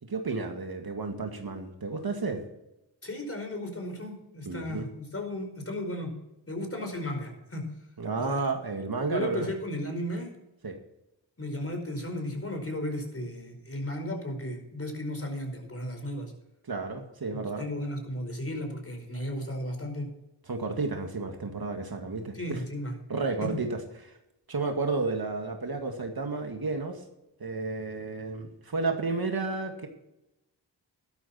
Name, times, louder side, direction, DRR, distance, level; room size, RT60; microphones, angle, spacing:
voice 1, 0.0-2.4 4.5-4.9 8.0-9.5 10.6-10.8 16.6-17.7 20.5-22.6 23.1-24.2 24.5-27.0 27.4-29.9, right 3 dB, 55° right, 4 dB, 2.1 m, -32 dB
voice 2, 3.0-6.1 6.5-7.6 8.2-8.5 9.0-10.3 11.4-16.3 17.6-20.1 22.3-22.9 23.4-23.5, left 1 dB, 30° left, 4 dB, 5.0 m, -34 dB
12.5 x 12.0 x 4.4 m, 0.90 s
cardioid pair, 50°, 45 cm